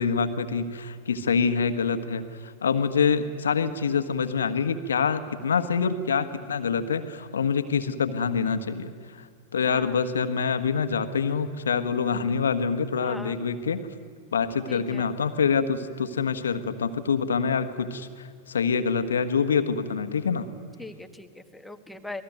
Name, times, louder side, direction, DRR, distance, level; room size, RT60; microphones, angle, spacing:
voice 1, 0.0-9.3 9.5-13.8 14.3-20.5, left 6 dB, 70° left, 9 dB, 1.5 m, -26 dB
voice 2, 13.0-13.4 14.7-15.1 20.8-22.2, left 2 dB, 5° left, 8 dB, 1.6 m, -40 dB
28.0 x 19.5 x 9.4 m, 2.1 s
figure-of-eight pair, 90°, 0 cm